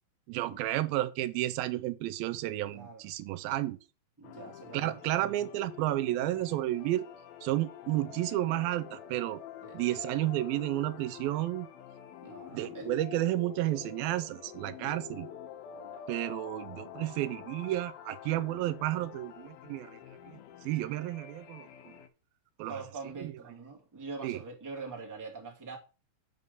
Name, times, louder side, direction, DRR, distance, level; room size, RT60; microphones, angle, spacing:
voice 1, 0.3-3.8 4.7-7.1 7.4-9.4 9.7-11.7 12.5-15.3 16.1-20.0 20.2-20.4 20.7-22.0 22.6-22.8 23.2-23.3 24.2-24.4, right 15 dB, 85° right, 2.4 m, -32 dB
voice 2, 2.7-3.0 4.2-5.3 9.6-9.8 12.2-12.9 15.7-16.0 21.7-21.8 22.6-25.8, right 4 dB, 5° right, 1.6 m, -44 dB
sound 1, 4.2-22.1, left 10 dB, 90° left, 2.8 m, -47 dB
6.9 x 5.4 x 6.8 m
omnidirectional pair, 4.2 m